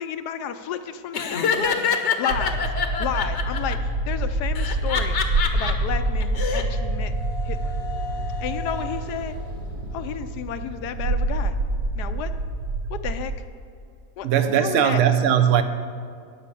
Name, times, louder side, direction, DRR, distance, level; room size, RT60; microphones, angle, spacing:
voice 1, 0.0-1.8 2.2-2.6 3.0-5.2 5.5-7.1 7.5-7.7 8.4-9.4 9.9-11.5 11.9-12.3 13.0-13.3 14.2-14.3 14.6-15.0, left 9 dB, 80° left, 10 dB, 1.2 m, -31 dB
Laughter, 1.1-3.7 4.6-5.7 6.2-6.6, left 6 dB, 50° left, 1.0 m, -25 dB
sound 1, 2.3-13.4, right 2 dB, 80° right, 1.3 m, -27 dB
sound 2, 6.3-11.6, left 5 dB, 30° right, 0.8 m, -40 dB
voice 2, 14.2-15.6, right 9 dB, 60° right, 10 dB, 0.9 m, -19 dB
12.5 x 5.6 x 8.3 m, 2.3 s
omnidirectional pair, 1.7 m